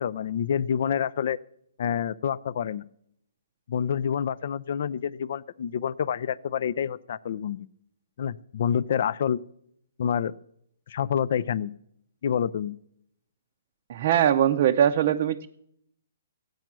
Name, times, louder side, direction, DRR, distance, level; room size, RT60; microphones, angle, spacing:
voice 1, 0.0-1.4 1.8-2.8 3.7-7.7 8.2-9.4 10.0-10.3 10.9-11.7 12.2-12.8, left 8 dB, 50° left, 20 dB, 0.4 m, -27 dB
voice 2, 13.9-15.5, right 10 dB, 40° right, 4 dB, 0.5 m, -21 dB
14.0 x 9.2 x 6.1 m, 0.73 s
hypercardioid pair, 165°, 0 cm